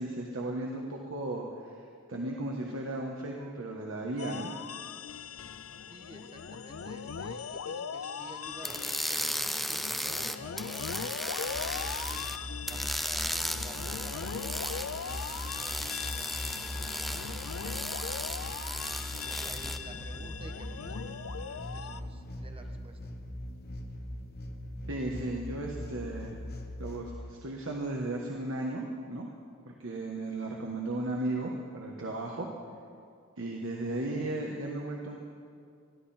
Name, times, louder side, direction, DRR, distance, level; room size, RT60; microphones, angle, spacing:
voice 1, 0.0-1.7 2.1-4.5 24.9-26.4 26.8-29.3 29.6-32.5 33.4-35.2, right 2 dB, 70° right, -1 dB, 1.5 m, -35 dB
Fantasy Machine, 4.2-22.0, left 6 dB, 75° left, 0.6 m, -40 dB
voice 2, 5.9-23.1, right 1 dB, 25° right, 4 dB, 1.3 m, -52 dB
sound 1, 8.6-12.4 12.7-19.8, equal, ahead, 0.6 m, -36 dB
sound 2, 11.4-27.1, left 1 dB, 50° left, 1.2 m, -41 dB
21.0 x 15.0 x 4.4 m, 2.3 s
head